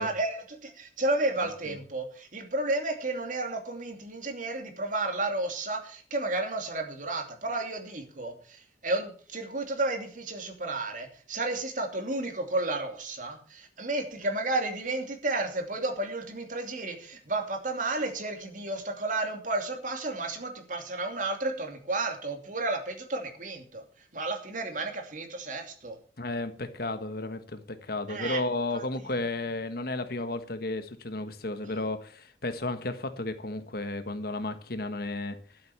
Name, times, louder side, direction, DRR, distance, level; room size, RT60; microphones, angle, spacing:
voice 1, 0.0-23.8 24.1-26.0 28.1-28.4 28.7-28.8, right 2 dB, 45° right, 2.7 m, -32 dB
voice 2, 26.2-35.4, left 2 dB, 60° left, 1.4 m, -33 dB
12.5 x 7.9 x 6.9 m
head